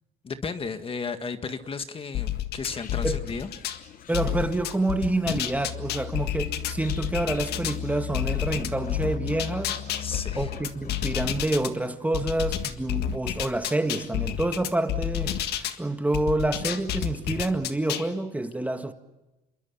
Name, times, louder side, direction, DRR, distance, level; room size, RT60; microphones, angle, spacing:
voice 1, 0.2-3.5 10.0-10.5, left 5 dB, 35° left, 9 dB, 1.8 m, -34 dB
sound 1, 2.1-3.8 4.1-7.8 8.1-11.7 12.1-15.8 16.1-18.1, left 11 dB, 75° left, 1.8 m, -30 dB
sound 2, 2.7-11.9, left 8 dB, 55° left, 1.1 m, -39 dB
voice 2, 4.1-9.7 10.4-18.9, right 2 dB, 10° right, 8 dB, 1.6 m, -28 dB
27.5 x 22.5 x 7.1 m, 1.0 s
cardioid pair, 110°, 17 cm